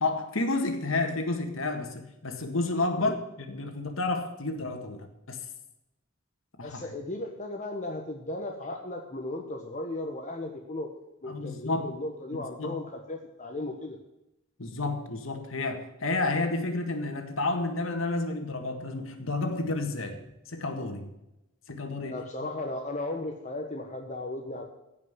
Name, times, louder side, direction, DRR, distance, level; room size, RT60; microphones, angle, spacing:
voice 1, 0.0-5.4 6.6-6.9 11.3-12.0 12.3-12.8 14.6-21.1 21.7-22.2, left 2 dB, 80° left, 1.8 m, -31 dB
voice 2, 6.6-11.0 11.2-14.0 22.1-24.6, left 2 dB, 40° left, 1.3 m, -36 dB
15.5 x 5.6 x 8.0 m
head